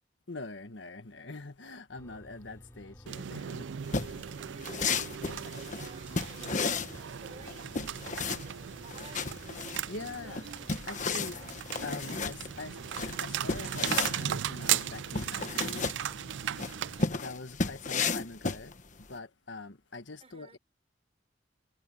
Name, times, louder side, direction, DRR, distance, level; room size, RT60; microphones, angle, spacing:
voice 1, 0.3-3.6 4.0-4.1 5.3-5.5 9.9-10.5 10.9-11.4 11.8-15.9 17.1-18.7 19.1-20.6, left 3 dB, 90° left, 1.5 m, -43 dB
sound 1, 1.9-17.1, equal, 15° left, 5.9 m, -53 dB
sound 2, 3.1-17.1, right 10 dB, 85° right, 0.4 m, -37 dB
sound 3, 3.9-19.1, left 4 dB, 45° left, 1.2 m, -34 dB
voice 2, 4.4-6.8 7.1-9.4 9.8-10.5 20.2-20.6, right 3 dB, 35° right, 4.9 m, -55 dB
head